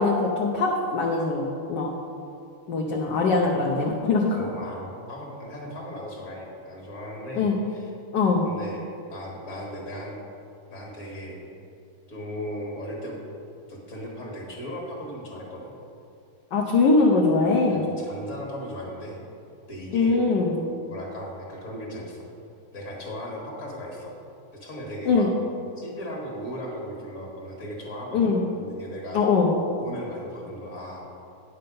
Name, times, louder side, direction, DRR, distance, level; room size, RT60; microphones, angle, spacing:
voice 1, 0.0-1.4 1.7-1.9 2.7-4.4 7.3-7.6 8.1-8.4 16.5-17.8 19.9-20.6 25.1-25.3 28.1-28.4 29.1-29.5, left 4 dB, 60° left, -1 dB, 1.3 m, -22 dB
voice 2, 4.3-7.9 8.5-8.8 9.1-10.2 10.7-11.4 12.1-13.2 13.7-15.7 17.7-19.2 19.7-20.2 20.9-22.2 22.7-24.1 24.6-25.3 25.8-28.3 28.6-29.3 29.8-31.1, equal, 35° left, -2 dB, 1.9 m, -37 dB
9.6 x 6.7 x 5.3 m, 2.5 s
omnidirectional pair, 2.4 m